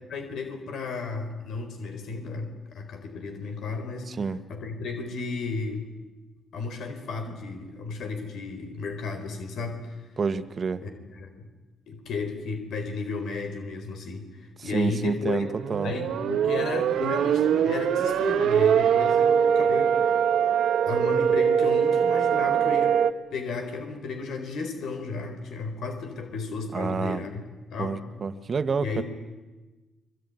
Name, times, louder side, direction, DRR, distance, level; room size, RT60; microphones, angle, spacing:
voice 1, 0.1-4.2 4.5-5.9 6.5-10.0 10.8-11.5 11.9-15.4 15.7-20.2 20.9-23.0 23.3-27.4 27.7-28.0 28.8-29.0, left 4 dB, 70° left, 6 dB, 4.2 m, -34 dB
voice 2, 4.1-4.4 10.2-10.8 14.6-15.9 26.7-27.2 27.8-29.0, right 5 dB, 40° right, 11 dB, 1.7 m, -28 dB
sound 1, 15.4-23.1, right 8 dB, 75° right, 1.4 m, -22 dB
25.0 x 23.5 x 9.5 m, 1.2 s
cardioid pair, 90°, 0 cm